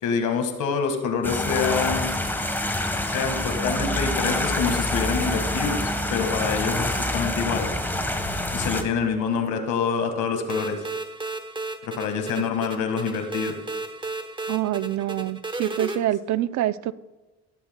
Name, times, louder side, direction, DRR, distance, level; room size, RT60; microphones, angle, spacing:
voice 1, 0.0-2.1 2.9-7.7 8.5-10.8 11.8-13.6, left 6 dB, 85° left, 6 dB, 1.7 m, -26 dB
sound 1, 1.2-8.8, left 1 dB, 5° left, 1.2 m, -26 dB
sound 2, 10.5-16.0, right 2 dB, 15° right, 0.9 m, -33 dB
voice 2, 14.5-16.9, right 13 dB, 70° right, 16 dB, 0.5 m, -26 dB
14.0 x 12.0 x 2.2 m, 1.2 s
cardioid pair, 90°, 30 cm